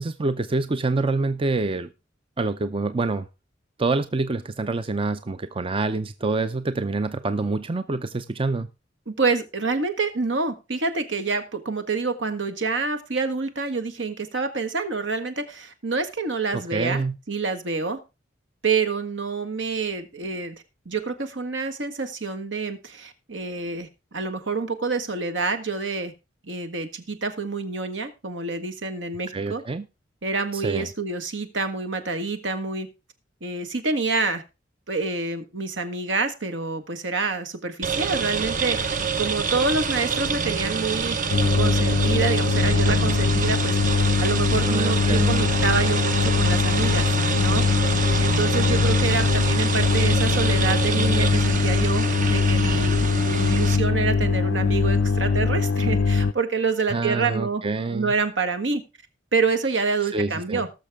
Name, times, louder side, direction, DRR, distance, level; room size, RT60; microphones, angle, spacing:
voice 1, 0.0-1.9 2.4-3.3 3.8-8.7 16.5-17.2 29.3-29.9 30.5-30.9 44.6-45.4 56.9-58.1 60.1-60.6, right 3 dB, 30° right, 11 dB, 0.5 m, -26 dB
voice 2, 9.1-18.0 18.6-20.6 20.8-23.9 24.1-26.1 26.5-29.6 30.2-32.9 33.4-34.4 34.9-41.2 41.5-47.1 47.3-57.6 57.9-58.8 59.3-60.7, right 4 dB, 75° right, 8 dB, 1.5 m, -27 dB
sound 1, 37.8-53.8, right 5 dB, 45° right, 0.9 m, -27 dB
sound 2, 41.3-56.3, left 4 dB, 70° left, 0.5 m, -22 dB
19.0 x 6.6 x 3.5 m, 0.28 s
head